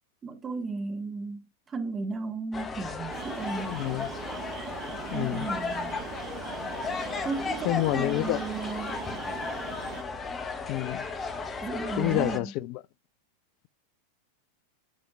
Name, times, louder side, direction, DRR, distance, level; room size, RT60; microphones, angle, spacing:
voice 1, 0.2-3.8 5.1-6.0 7.2-9.1 11.6-12.5, right 3 dB, 20° right, 1.7 m, -35 dB
sound 1, 2.5-12.4, left 4 dB, 20° left, 1.1 m, -35 dB
sound 2, 3.1-10.0, right 14 dB, 40° right, 0.5 m, -41 dB
voice 2, 3.7-4.1 5.1-5.5 7.6-8.4 10.7-11.1 11.9-12.8, left 18 dB, 45° left, 0.4 m, -28 dB
8.4 x 7.0 x 2.4 m
figure-of-eight pair, 90°, 0 cm